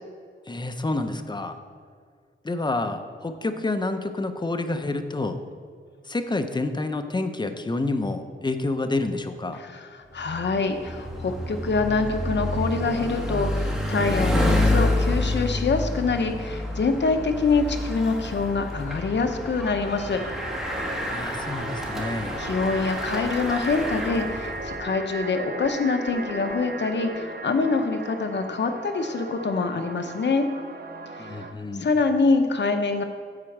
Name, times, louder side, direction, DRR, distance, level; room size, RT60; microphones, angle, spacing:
voice 1, 0.5-1.6 2.4-5.4 6.1-9.6 21.1-22.4 31.2-31.9, left 2 dB, 20° left, 8 dB, 0.6 m, -28 dB
voice 2, 9.5-20.2 22.3-30.5 31.2-31.4 31.8-33.0, left 4 dB, 60° left, 6 dB, 0.8 m, -25 dB
Bicycle, 10.2-24.8, left 1 dB, ahead, 1.2 m, -28 dB
sound 1, 20.2-31.5, right 2 dB, 50° right, 0.7 m, -36 dB
9.8 x 4.4 x 7.2 m, 2.1 s
wide cardioid pair, 130°, 21 cm